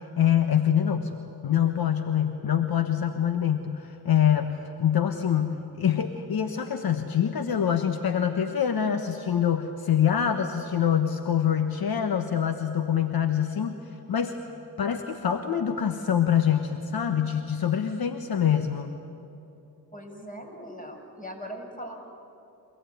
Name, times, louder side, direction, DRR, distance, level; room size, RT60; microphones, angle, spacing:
voice 1, 0.0-13.7 14.1-14.3 14.8-18.9, left 9 dB, 65° left, 8 dB, 1.3 m, -25 dB
voice 2, 19.9-22.0, equal, 20° left, 2 dB, 6.8 m, -40 dB
28.0 x 17.0 x 9.4 m, 2.8 s
supercardioid pair, 45°, 39 cm